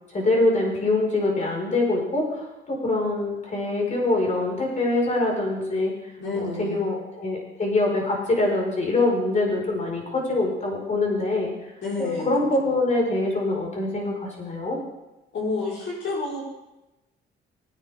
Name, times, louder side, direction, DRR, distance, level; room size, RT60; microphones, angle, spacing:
voice 1, 0.1-5.9 6.3-11.5 12.0-14.8, left 2 dB, 35° left, -1 dB, 5.8 m, -24 dB
voice 2, 6.2-6.8 11.8-12.3 15.3-16.4, left 3 dB, 65° left, -5 dB, 5.4 m, -29 dB
20.5 x 10.0 x 3.8 m, 0.98 s
cardioid pair, 90°, 20 cm